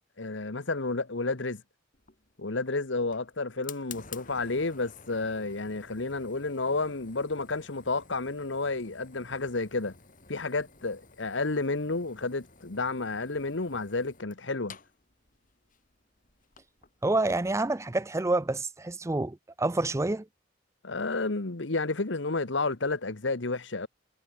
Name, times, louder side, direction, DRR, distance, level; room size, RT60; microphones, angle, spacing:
voice 1, 0.2-1.6 2.4-9.9 10.3-14.8 20.8-23.9, left 3 dB, 65° left, 1.3 m, -31 dB
Fire, 1.9-17.6, left 6 dB, 45° left, 7.0 m, -52 dB
voice 2, 17.0-20.3, right 2 dB, 15° right, 0.5 m, -28 dB
head